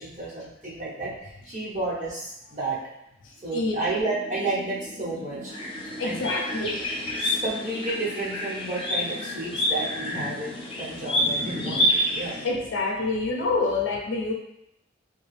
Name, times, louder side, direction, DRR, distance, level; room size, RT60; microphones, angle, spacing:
voice 1, 0.0-2.8 3.4-5.5 6.0-6.2 6.6-6.7 7.2-12.4, right 2 dB, 40° right, -8 dB, 1.1 m, -31 dB
sound 1, 3.6-12.8, left 1 dB, 15° right, 1.0 m, -42 dB
sound 2, 5.5-12.5, left 1 dB, 30° left, 0.6 m, -28 dB
voice 2, 6.0-6.8 12.4-14.3, left 3 dB, 75° left, 0 dB, 0.6 m, -26 dB
2.9 x 2.3 x 3.2 m, 0.83 s
head